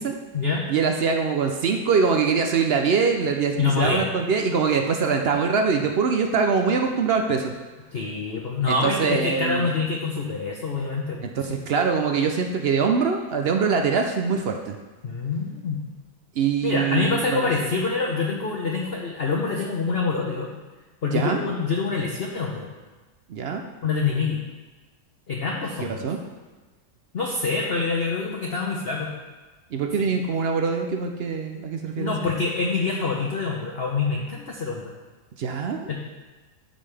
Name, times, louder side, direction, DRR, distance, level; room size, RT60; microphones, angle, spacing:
voice 1, 0.7-7.5 8.7-9.7 11.4-14.8 16.4-17.5 21.1-21.5 23.3-23.6 25.8-26.2 29.7-32.1 35.4-35.9, right 5 dB, 75° right, 4 dB, 0.5 m, -23 dB
voice 2, 3.6-4.0 7.9-11.6 15.0-15.8 16.6-20.5 21.0-22.7 23.8-24.4 25.3-26.1 27.1-29.1 32.0-34.9 35.9-36.0, left 4 dB, 50° left, -1 dB, 0.8 m, -26 dB
12.5 x 5.5 x 3.4 m, 1.2 s
omnidirectional pair, 1.8 m